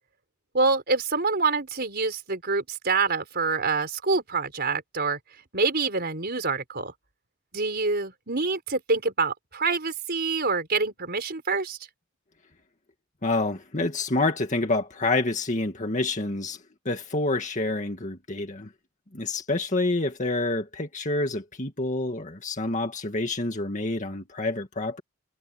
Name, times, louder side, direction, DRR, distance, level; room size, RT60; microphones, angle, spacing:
voice 1, 0.5-5.2 5.5-6.9 7.5-11.8, right 4 dB, 50° right, 4.7 m, -26 dB
voice 2, 13.2-16.6 16.9-18.7 19.1-25.0, left 2 dB, 35° left, 2.0 m, -27 dB
head